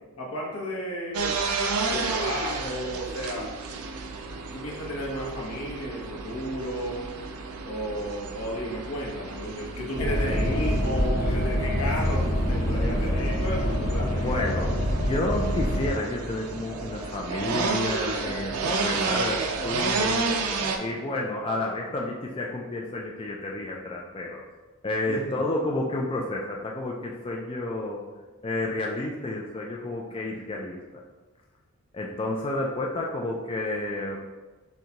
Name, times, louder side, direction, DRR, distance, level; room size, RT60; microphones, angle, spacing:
voice 1, 0.2-1.4 1.9-3.5 4.5-7.1 7.6-14.7 25.0-25.3, equal, 70° left, -2 dB, 1.0 m, -33 dB
sound 1, 1.1-20.8, right 4 dB, 75° right, 0.5 m, -32 dB
sound 2, 10.0-15.9, equal, 40° left, 0.7 m, -26 dB
sound 3, 14.0-21.7, right 1 dB, 15° right, 0.6 m, -44 dB
voice 2, 14.2-20.3 20.8-24.4 24.8-28.1 28.4-31.0 31.9-34.2, left 2 dB, 25° left, -2 dB, 0.3 m, -30 dB
6.3 x 2.3 x 2.9 m, 1.2 s
head